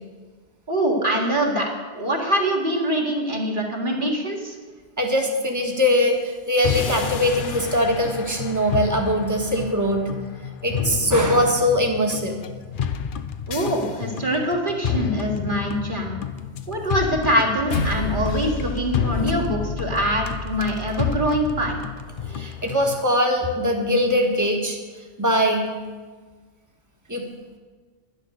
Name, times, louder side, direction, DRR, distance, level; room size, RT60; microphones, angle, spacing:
voice 1, 0.7-4.6 13.5-16.2 16.7-21.8, right 1 dB, 50° right, -1 dB, 2.2 m, -24 dB
voice 2, 5.0-10.1 10.6-12.3 22.3-24.8 25.2-25.7 27.1-27.2, equal, 15° right, 1 dB, 1.6 m, -21 dB
sound 1, 6.6-23.0, left 8 dB, 55° left, 0.8 m, -30 dB
sound 2, 17.7-22.3, left 3 dB, 80° left, 1.5 m, -31 dB
11.0 x 10.5 x 6.5 m, 1.4 s
omnidirectional pair, 1.1 m